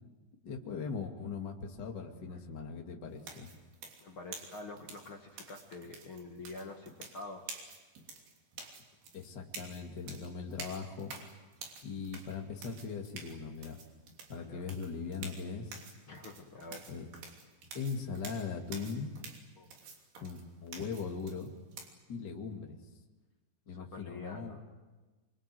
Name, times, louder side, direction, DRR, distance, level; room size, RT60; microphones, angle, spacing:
voice 1, 0.4-3.5 9.1-11.1 11.8-13.8 14.3-15.8 16.9-17.1 17.7-19.1 20.2-21.5 22.1-22.8 23.7-24.6, left 5 dB, 30° left, 1 dB, 2.2 m, -40 dB
sound 1, 3.2-21.9, right 5 dB, 65° right, 5.1 m, -49 dB
voice 2, 4.0-7.5 14.3-14.6 16.1-16.9 19.6-19.9 23.8-24.6, left 2 dB, 45° left, 2 dB, 1.7 m, -47 dB
26.0 x 24.0 x 7.9 m, 1.2 s
omnidirectional pair, 5.0 m